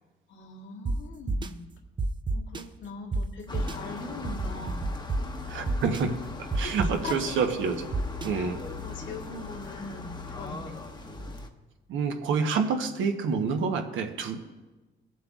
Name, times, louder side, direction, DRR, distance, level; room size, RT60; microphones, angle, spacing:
voice 1, 0.3-1.7 2.3-4.9 6.6-6.7 7.0-7.4 8.3-8.5 8.8-10.7, left 4 dB, 70° left, 0 dB, 1.5 m, -41 dB
sound 1, 0.9-1.0 1.3-1.5 2.0-2.6 3.1-3.2 3.5-3.7 4.2-5.2 5.7-6.0 6.5-7.1 7.9-8.3, right 3 dB, 25° right, 0.5 m, -28 dB
sound 2, 3.5-11.5, left 3 dB, 20° left, 0.9 m, -39 dB
voice 2, 5.5-6.1 6.5-7.9 8.2-8.6 11.9-14.4, right 5 dB, 80° right, 6 dB, 0.9 m, -28 dB
21.5 x 7.5 x 2.4 m, 1.2 s
cardioid pair, 90°, 20 cm